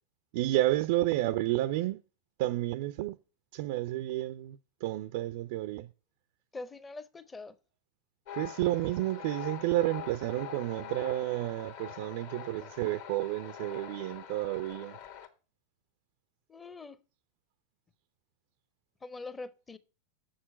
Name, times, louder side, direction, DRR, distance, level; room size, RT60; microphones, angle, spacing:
voice 1, 0.3-2.0 2.4-3.2 3.5-4.6 4.8-5.9 8.3-14.9, right 16 dB, 50° right, 0.4 m, -31 dB
voice 2, 6.5-7.5 16.5-17.0 19.0-19.8, left 3 dB, 15° left, 0.7 m, -43 dB
sound 1, 8.3-15.3, left 9 dB, 50° left, 1.4 m, -44 dB
7.3 x 6.4 x 5.4 m
figure-of-eight pair, 90°, 0 cm